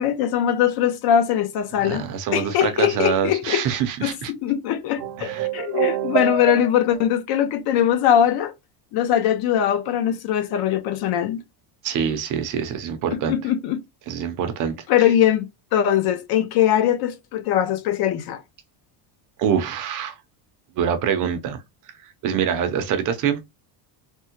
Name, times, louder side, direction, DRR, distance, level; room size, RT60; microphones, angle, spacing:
voice 1, 0.0-2.0 2.3-3.6 4.0-8.5 8.9-11.4 13.1-13.8 14.9-18.4, left 10 dB, 55° left, 0.6 m, -21 dB
voice 2, 1.8-4.3 5.2-5.5 11.8-13.3 14.1-14.8 19.4-20.2 20.7-21.6 22.2-23.4, right 8 dB, 45° right, 0.5 m, -25 dB
sound 1, 5.0-7.1, right 9 dB, 85° right, 0.8 m, -26 dB
3.4 x 2.1 x 2.8 m
cardioid pair, 165°, 46 cm